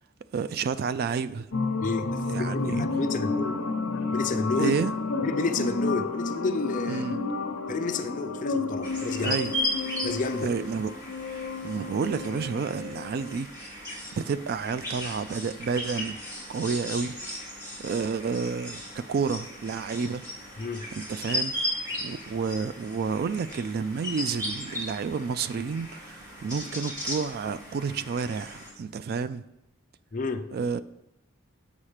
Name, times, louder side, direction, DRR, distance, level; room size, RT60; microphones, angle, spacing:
voice 1, 0.3-1.5 2.3-2.8 4.6-4.9 6.9-7.2 9.2-9.5 10.4-10.9 11.3-13.9 14.2-16.2 16.5-17.2 17.8-20.2 21.0-21.8 22.0-29.4 30.5-30.8, right 5 dB, 45° right, 0.3 m, -30 dB
sound 1, 1.5-13.3, left 3 dB, 65° left, 0.8 m, -31 dB
voice 2, 1.8-3.5 4.1-4.8 5.2-7.0 7.7-9.4 10.0-10.5 20.6-20.9 30.1-30.5, left 3 dB, 35° left, 0.5 m, -30 dB
sound 2, 8.8-28.7, left 1 dB, 15° right, 2.1 m, -36 dB
7.2 x 5.7 x 4.9 m
head